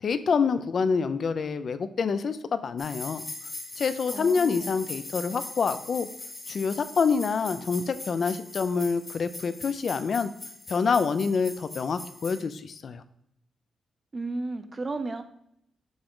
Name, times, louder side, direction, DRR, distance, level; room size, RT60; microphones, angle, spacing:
voice 1, 0.0-3.2 3.8-6.1 6.5-10.3 10.7-13.0, left 5 dB, 50° left, 12 dB, 0.4 m, -27 dB
sound 1, 2.8-12.4, left 2 dB, 30° left, 1.3 m, -41 dB
voice 2, 4.1-4.7 14.1-15.2, right 3 dB, 30° right, 9 dB, 0.5 m, -33 dB
7.0 x 3.8 x 3.7 m, 0.75 s
wide cardioid pair, 130°, 0 cm